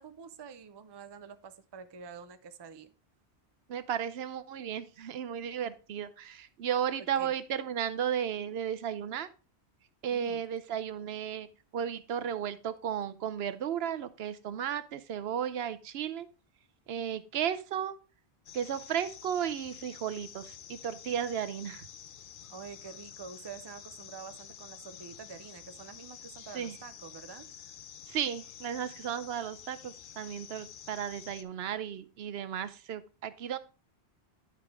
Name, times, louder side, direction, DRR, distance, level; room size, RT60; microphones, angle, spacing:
voice 1, 0.0-2.9 7.0-7.3 10.1-10.4 22.5-27.5, right 6 dB, 35° right, 11 dB, 0.4 m, -47 dB
voice 2, 3.7-9.3 10.0-11.5 11.7-16.3 16.9-17.9 18.5-21.9 26.5-26.8 28.1-33.6, right 9 dB, 75° right, 13 dB, 0.8 m, -34 dB
sound 1, 18.5-31.4, left 9 dB, 60° left, 0.7 m, -49 dB
10.0 x 4.9 x 3.5 m, 0.34 s
omnidirectional pair, 1.1 m